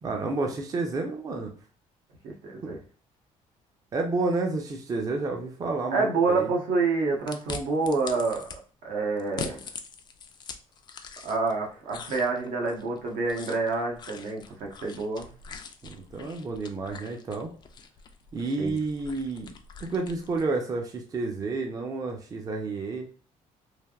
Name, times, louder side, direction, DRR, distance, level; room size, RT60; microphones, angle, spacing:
voice 1, 0.0-1.5 2.6-2.7 3.9-6.5 15.8-17.5 18.3-19.5 19.8-23.1, right 3 dB, 25° right, 2 dB, 0.5 m, -30 dB
voice 2, 2.2-2.8 5.9-8.4 8.8-9.6 11.2-15.3 18.6-18.7, right 3 dB, 75° right, 0 dB, 0.9 m, -27 dB
sound 1, 7.3-8.6 9.2-11.6 11.9-20.5, left 5 dB, 35° left, 0.3 m, -43 dB
3.2 x 2.5 x 2.3 m, 0.41 s
cardioid pair, 135°, 14 cm